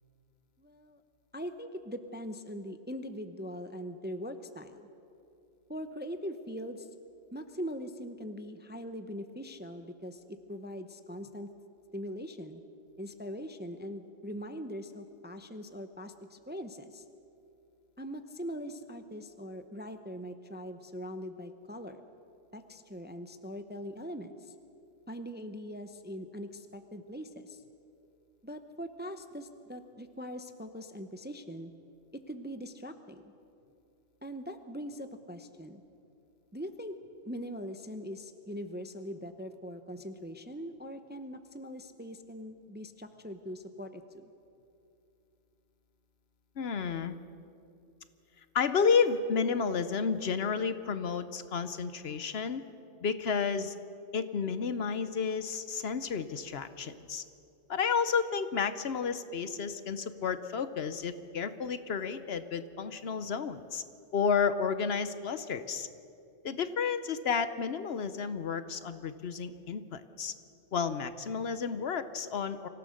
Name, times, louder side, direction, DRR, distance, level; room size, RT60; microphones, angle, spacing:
voice 1, 0.6-1.0 1.3-4.9 5.7-6.9 7.3-11.5 11.9-12.6 13.0-17.0 18.0-22.0 22.5-24.5 25.1-27.6 28.4-31.7 32.1-33.3 34.2-35.8 36.5-36.9 37.2-44.3, equal, 10° right, 8 dB, 0.6 m, -41 dB
voice 2, 46.6-47.2 48.5-52.6 53.0-53.7 54.1-57.2 57.7-63.8 64.1-65.9 66.4-70.3 70.7-72.7, left 6 dB, 60° left, 12 dB, 1.0 m, -31 dB
25.0 x 16.0 x 6.5 m, 2.7 s
omnidirectional pair, 1.2 m